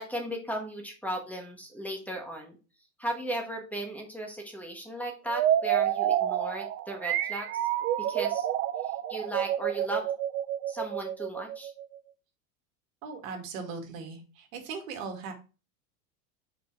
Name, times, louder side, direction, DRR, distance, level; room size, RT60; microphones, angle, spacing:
voice 1, 0.0-2.5 3.0-7.6 8.0-8.5 8.8-10.1 10.7-11.7, right 1 dB, 5° left, 2 dB, 1.3 m, -36 dB
sound 1, 5.3-12.0, right 11 dB, 30° right, 0.5 m, -29 dB
voice 2, 13.0-15.3, right 5 dB, 70° right, 4 dB, 2.1 m, -39 dB
4.9 x 4.6 x 4.5 m, 0.32 s
supercardioid pair, 130°, 41 cm